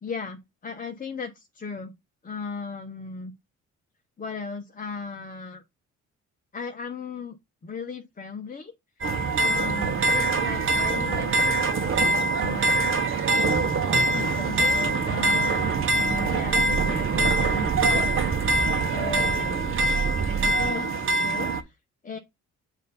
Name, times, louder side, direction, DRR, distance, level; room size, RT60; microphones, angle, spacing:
voice 1, 0.0-1.9 2.2-3.3 4.2-5.6 6.5-7.4 7.6-8.7 9.4-13.1 14.0-18.1 18.8-19.8 20.4-21.8 22.0-22.2, left 5 dB, 30° left, 0.9 m, -36 dB
sound 1, 9.0-21.6, right 2 dB, 45° right, 0.9 m, -24 dB
sound 2, 15.5-20.7, right 7 dB, 30° right, 0.6 m, -30 dB
7.4 x 2.7 x 5.2 m
cardioid pair, 90°, 30 cm